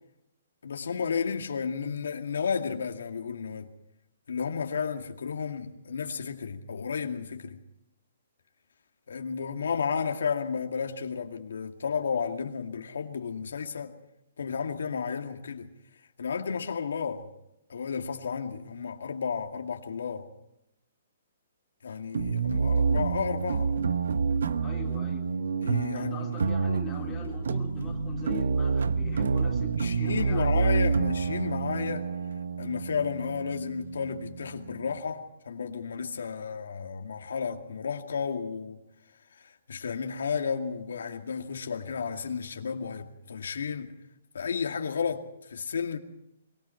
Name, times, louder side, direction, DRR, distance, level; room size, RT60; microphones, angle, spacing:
voice 1, 0.6-3.7 4.3-7.6 9.1-13.9 14.4-15.7 16.2-17.3 17.7-20.3 21.8-23.7 25.6-26.3 29.8-32.1 32.6-38.8 39.3-44.0 44.3-46.0, left 6 dB, 85° left, 2.3 m, -32 dB
sound 1, 22.1-35.0, right 5 dB, 85° right, 1.0 m, -28 dB
voice 2, 24.6-25.3 25.9-30.8, left 5 dB, 10° left, 3.8 m, -41 dB
24.0 x 23.5 x 4.5 m
hypercardioid pair, 165°, 0 cm